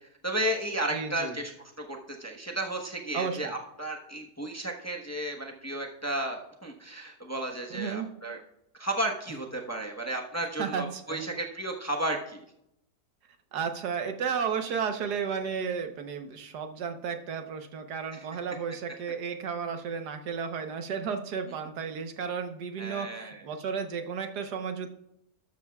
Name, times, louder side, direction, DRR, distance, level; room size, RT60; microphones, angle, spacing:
voice 1, 0.0-8.4 8.7-12.4 18.1-18.2 22.8-23.5, right 1 dB, 10° left, 1 dB, 0.9 m, -33 dB
voice 2, 0.9-1.4 3.1-3.5 7.7-8.1 10.6-11.3 13.5-24.9, right 6 dB, 85° right, 6 dB, 1.6 m, -33 dB
13.0 x 12.5 x 2.4 m, 0.80 s
omnidirectional pair, 1.7 m